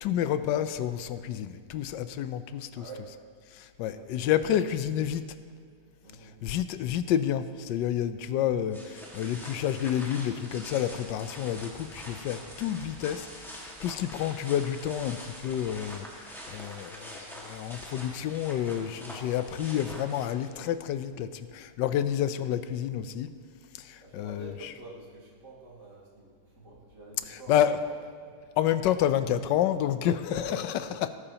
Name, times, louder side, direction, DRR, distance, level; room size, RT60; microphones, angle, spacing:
voice 1, 0.0-2.8 3.5-5.2 6.4-23.3 23.8-24.5 27.5-27.8 28.6-31.1, left 10 dB, 90° left, 12 dB, 1.2 m, -29 dB
voice 2, 2.7-3.1 3.7-4.2 6.0-6.4 24.0-28.4 30.3-31.1, right 3 dB, 70° right, -6 dB, 3.1 m, -47 dB
sound 1, 8.7-20.7, equal, ahead, 1.6 m, -45 dB
18.0 x 9.8 x 2.9 m, 2.1 s
omnidirectional pair, 1.9 m